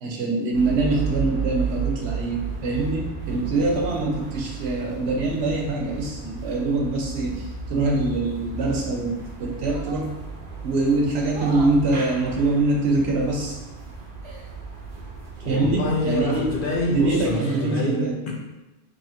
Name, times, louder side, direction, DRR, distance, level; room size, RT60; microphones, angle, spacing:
voice 1, 0.0-10.2 10.6-13.6 15.4-16.5 16.9-18.2, right 2 dB, 80° right, 0 dB, 1.0 m, -24 dB
sound 1, 0.5-17.3, right 5 dB, 60° right, 0.8 m, -34 dB
sound 2, 1.2-1.5 3.1-3.7 5.1-6.2 8.2-9.0 9.5-10.1 11.2-11.8 13.0-13.2 14.2-14.6 16.0-16.4 17.1-17.7, right 2 dB, 35° right, 0.5 m, -42 dB
voice 2, 15.4-18.3, left 2 dB, 60° left, -1 dB, 0.8 m, -26 dB
3.0 x 2.4 x 4.2 m, 1.1 s
omnidirectional pair, 1.1 m